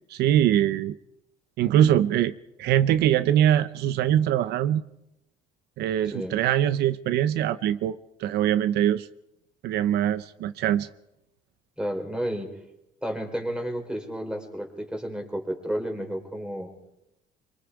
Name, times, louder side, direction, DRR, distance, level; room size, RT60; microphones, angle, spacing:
voice 1, 0.1-1.0 1.6-2.3 2.6-4.8 5.8-9.1 9.6-10.9, right 11 dB, 75° right, 13 dB, 0.7 m, -23 dB
voice 2, 11.8-12.5 13.0-16.7, equal, 5° right, 3 dB, 4.0 m, -31 dB
25.0 x 23.5 x 4.8 m, 0.86 s
cardioid pair, 110°, 17 cm